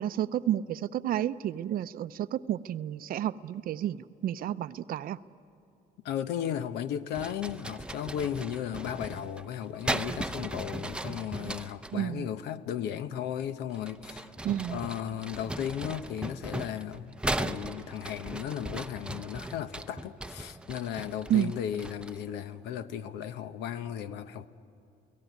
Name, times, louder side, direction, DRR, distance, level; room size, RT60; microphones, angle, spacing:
voice 1, 0.0-5.2 11.9-12.3 14.4-14.8 21.3-21.5, right 11 dB, 60° right, 0.6 m, -31 dB
voice 2, 6.0-14.3 14.7-24.5, left 9 dB, 85° left, 0.9 m, -35 dB
sound 1, 7.1-12.0 13.7-22.3, right 1 dB, 5° right, 0.6 m, -37 dB
29.5 x 18.0 x 9.4 m
cardioid pair, 110°, 17 cm